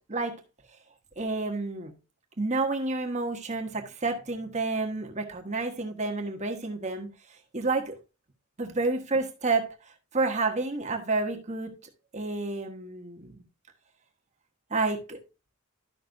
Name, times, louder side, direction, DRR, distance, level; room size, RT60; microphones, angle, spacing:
voice 1, 1.2-1.9 2.4-7.1 7.5-8.0 8.6-9.7 10.1-11.7 12.1-13.4 14.7-15.2, right 3 dB, 35° right, 1.3 m, -29 dB
12.0 x 5.8 x 2.6 m
head